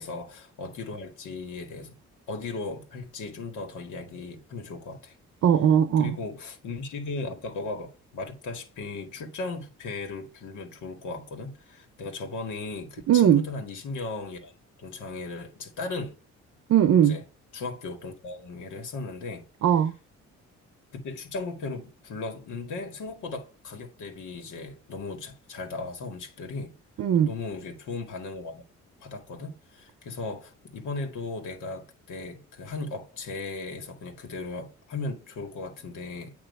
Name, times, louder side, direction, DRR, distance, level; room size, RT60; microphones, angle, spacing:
voice 1, 0.0-2.0 2.3-5.2 6.0-14.5 14.8-16.1 17.1-17.2 17.5-19.4 20.9-26.7 27.2-28.6 29.0-36.3, left 3 dB, 80° left, 2.0 m, -37 dB
voice 2, 5.4-6.1 13.1-13.5 16.7-17.2 19.6-19.9 27.0-27.3, right 9 dB, 60° right, 0.7 m, -19 dB
9.0 x 3.0 x 5.4 m
cardioid pair, 90°, 30 cm